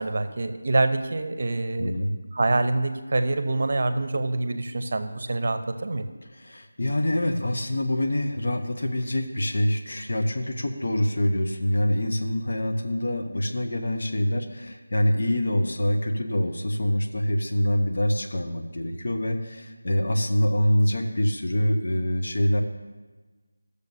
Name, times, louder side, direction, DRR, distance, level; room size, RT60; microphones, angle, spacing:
voice 1, 0.0-2.0 2.3-6.1, right 2 dB, 50° right, 9 dB, 0.7 m, -25 dB
voice 2, 1.8-2.1 6.3-22.6, left 1 dB, 60° left, 4 dB, 0.9 m, -25 dB
15.0 x 6.7 x 2.7 m, 1.3 s
figure-of-eight pair, 170°, 0 cm